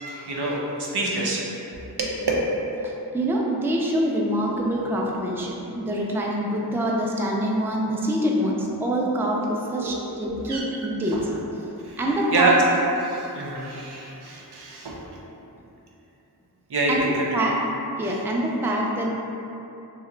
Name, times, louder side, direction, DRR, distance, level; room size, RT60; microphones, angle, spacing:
voice 1, 0.0-1.4 1.7-2.3 9.8-10.1 10.5-10.6 11.1-11.2 11.8-12.0 12.3-12.5 13.0-15.0 16.7-17.3, right 3 dB, 75° right, -4 dB, 0.6 m, -26 dB
voice 2, 2.8-11.4 12.0-12.5 16.9-17.0 17.3-17.5 18.0-19.1, right 1 dB, 5° right, -2 dB, 0.3 m, -25 dB
2.9 x 2.1 x 3.8 m, 2.9 s
wide cardioid pair, 50°, 39 cm